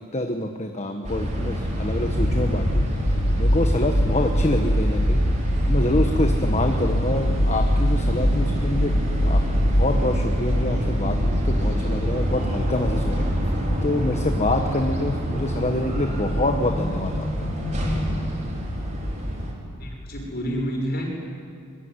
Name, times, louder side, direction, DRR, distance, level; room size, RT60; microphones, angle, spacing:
voice 1, 0.0-5.2 5.6-17.5 17.8-18.0, left 1 dB, 30° left, 4 dB, 1.3 m, -27 dB
sound 1, 1.0-19.5, equal, 30° right, 4.7 m, -27 dB
sound 2, 2.2-20.2, equal, 80° left, 2.8 m, -25 dB
voice 2, 19.8-21.1, equal, 45° left, 0 dB, 6.7 m, -29 dB
24.5 x 22.5 x 9.8 m, 2.3 s
head